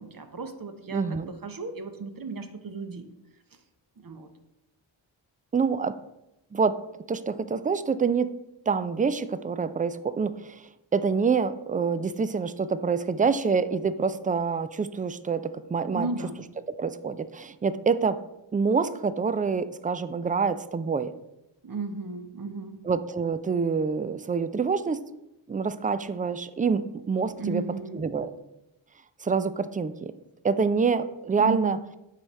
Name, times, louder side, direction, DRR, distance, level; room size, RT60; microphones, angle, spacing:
voice 1, 0.0-3.0 4.0-4.3 15.9-16.4 21.6-22.8 27.4-28.0 31.4-31.8, right 4 dB, 45° right, 7 dB, 0.9 m, -34 dB
voice 2, 0.9-1.3 5.5-6.0 6.5-6.8 7.1-8.3 8.7-10.6 10.9-16.1 16.7-18.2 18.5-21.1 22.8-25.0 25.5-27.6 27.9-28.3 29.2-30.1 30.4-31.8, right 5 dB, 20° right, 14 dB, 0.3 m, -26 dB
9.0 x 3.4 x 4.2 m, 0.90 s
cardioid pair, 45°, 48 cm